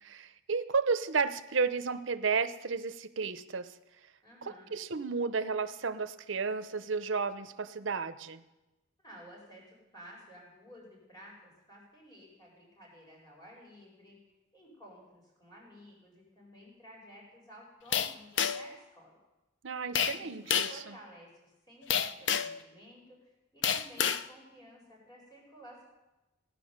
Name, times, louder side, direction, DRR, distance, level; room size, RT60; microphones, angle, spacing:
voice 1, 0.0-3.8 4.4-8.4 19.6-21.0, right 5 dB, 75° right, 12 dB, 0.8 m, -32 dB
voice 2, 4.2-4.7 9.0-14.2 14.5-19.2 20.0-25.8, equal, 20° left, -3 dB, 4.6 m, -54 dB
sound 1, 17.9-18.8 20.0-20.2 20.5-20.8 21.9-22.6 23.6-24.3, left 8 dB, 65° left, 0.5 m, -29 dB
17.0 x 10.0 x 6.6 m, 1.0 s
head